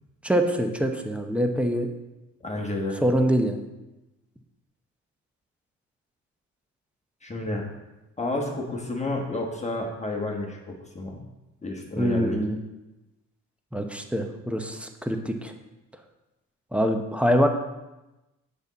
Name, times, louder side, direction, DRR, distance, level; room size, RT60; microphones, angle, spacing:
voice 1, 0.2-1.9 3.0-3.6 12.0-12.6 13.7-15.5 16.7-17.5, equal, 5° right, 5 dB, 0.7 m, -24 dB
voice 2, 2.4-3.0 7.2-7.7 8.2-11.2 11.6-12.4, left 2 dB, 20° left, -1 dB, 1.3 m, -30 dB
7.0 x 5.3 x 4.1 m, 1.0 s
cardioid pair, 90°, 30 cm